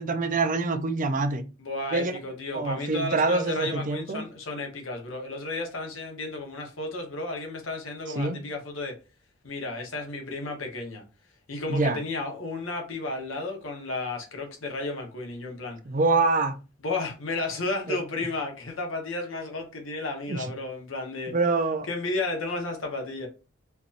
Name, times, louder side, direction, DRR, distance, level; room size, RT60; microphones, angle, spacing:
voice 1, 0.0-1.4 1.9-2.2 2.5-4.2 8.2-8.4 11.7-12.0 15.9-16.5 17.9-18.0 20.3-20.5 21.3-21.9, right 3 dB, 40° right, 0.5 m, -25 dB
voice 2, 1.6-8.9 9.4-11.0 11.5-15.8 16.8-21.3 21.9-23.3, left 2 dB, 75° left, 1.1 m, -33 dB
4.5 x 2.7 x 2.5 m
head